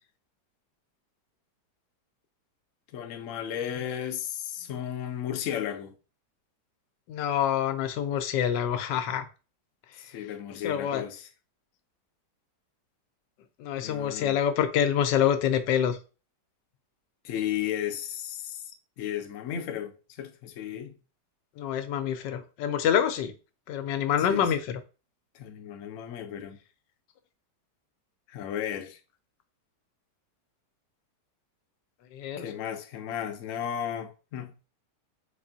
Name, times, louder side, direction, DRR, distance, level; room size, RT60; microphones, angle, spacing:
voice 1, 2.9-5.9 10.0-11.3 13.8-14.4 17.2-18.7 19.0-20.9 24.3-24.5 25.3-26.6 28.3-29.0 32.4-34.5, left 10 dB, 65° left, 0.8 m, -34 dB
voice 2, 7.1-9.3 10.6-11.0 13.6-16.0 21.6-23.3 23.7-24.6 32.1-32.5, left 9 dB, 90° left, 1.2 m, -26 dB
4.2 x 3.0 x 2.6 m
omnidirectional pair, 1.9 m